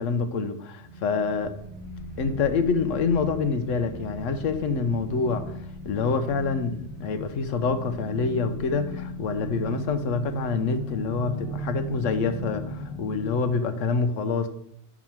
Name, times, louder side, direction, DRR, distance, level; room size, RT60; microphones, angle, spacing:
voice 1, 0.0-1.5 2.2-5.6 5.8-14.5, left 4 dB, 85° left, 9 dB, 1.1 m, -26 dB
sound 1, 0.8-13.5, left 1 dB, 40° left, 2.7 m, -37 dB
6.0 x 5.0 x 5.9 m, 0.73 s
omnidirectional pair, 1.3 m